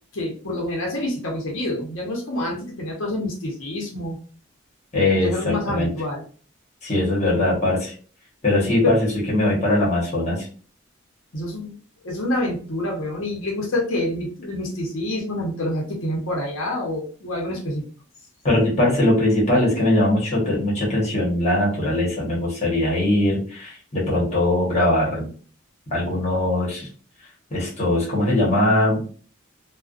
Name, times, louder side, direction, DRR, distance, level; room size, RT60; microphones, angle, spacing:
voice 1, 0.1-4.2 5.2-6.2 8.8-9.0 11.3-11.7 12.0-17.8, left 1 dB, 80° left, -1 dB, 0.8 m, -27 dB
voice 2, 4.9-5.9 6.8-7.9 8.4-10.5 18.4-25.3 25.9-26.9 27.5-29.0, left 1 dB, 35° left, -5 dB, 1.0 m, -21 dB
2.4 x 2.2 x 2.3 m, 0.41 s
head